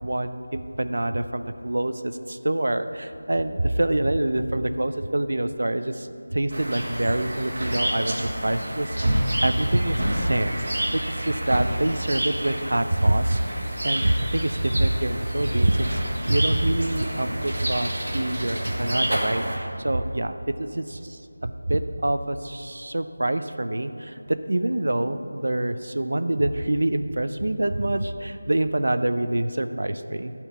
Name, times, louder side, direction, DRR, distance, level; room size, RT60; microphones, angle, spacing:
voice 1, 0.0-10.5 10.9-20.8 21.4-30.3, right 1 dB, 75° right, 10 dB, 0.6 m, -25 dB
sound 1, 6.5-19.6, right 1 dB, 55° right, 2.1 m, -29 dB
13.0 x 4.5 x 8.2 m, 3.0 s
figure-of-eight pair, 175°, 0 cm